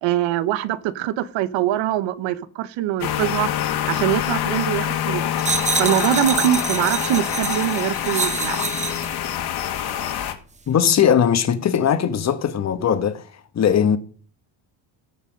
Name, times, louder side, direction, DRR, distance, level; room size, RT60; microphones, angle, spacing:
voice 1, 0.0-3.5 3.9-5.2 5.8-8.6, right 12 dB, 80° right, 1.1 m, -23 dB
sound 1, 3.0-10.3, left 10 dB, 55° left, 2.0 m, -25 dB
sound 2, 5.4-9.1 9.8-10.0, right 5 dB, 15° right, 0.8 m, -27 dB
voice 2, 10.7-13.2 13.5-14.0, left 8 dB, 35° left, 1.2 m, -19 dB
18.0 x 6.8 x 5.2 m
cardioid pair, 145°, 45 cm